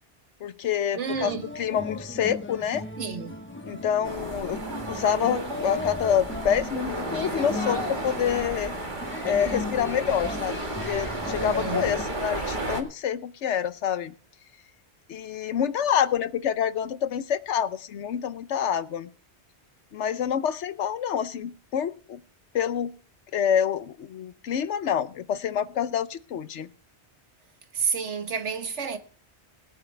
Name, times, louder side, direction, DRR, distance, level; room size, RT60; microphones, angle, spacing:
voice 1, 0.4-2.8 3.6-4.6 4.9-8.7 9.2-14.1 15.1-19.1 19.9-22.2 22.5-22.9 23.3-26.7, left 8 dB, 90° left, 1.1 m, -27 dB
voice 2, 0.9-1.4 3.0-3.3 11.3-11.9 27.7-29.0, right 6 dB, 90° right, 1.6 m, -30 dB
sound 1, 1.1-12.1, left 3 dB, 10° left, 1.0 m, -36 dB
sound 2, 4.0-12.8, right 2 dB, 45° right, 2.0 m, -33 dB
21.0 x 9.2 x 3.3 m
omnidirectional pair, 1.2 m